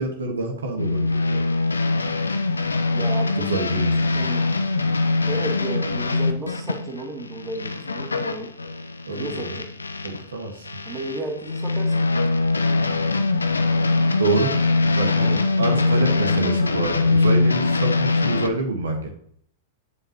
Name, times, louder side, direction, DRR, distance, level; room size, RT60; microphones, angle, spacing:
voice 1, 0.0-1.4 3.4-4.2 9.0-9.6 10.0-10.7 14.2-14.5 14.9-19.1, right 3 dB, 80° right, 2 dB, 1.5 m, -27 dB
sound 1, 0.8-10.2 10.6-18.5, left 3 dB, 90° left, 0.7 m, -22 dB
voice 2, 2.9-3.5 4.1-4.5 5.3-8.5 9.2-9.7 10.8-12.1 15.8-16.2, right 2 dB, 30° right, 1 dB, 2.3 m, -33 dB
8.4 x 7.5 x 2.9 m, 0.66 s
hypercardioid pair, 100°, 0 cm